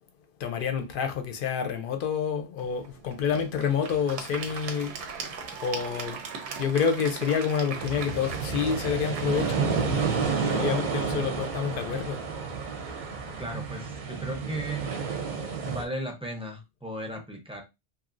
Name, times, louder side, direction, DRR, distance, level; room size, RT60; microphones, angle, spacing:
voice 1, 0.4-5.3 5.6-6.2 6.6-12.2, left 7 dB, 60° left, 0.6 m, -28 dB
Applause / Crowd, 2.6-11.7, right 5 dB, 90° right, 1.0 m, -40 dB
sound 1, 7.8-15.8, right 5 dB, 50° right, 0.7 m, -30 dB
voice 2, 13.4-14.9 15.6-17.6, right 1 dB, 5° right, 0.4 m, -35 dB
3.0 x 2.5 x 2.5 m
omnidirectional pair, 1.1 m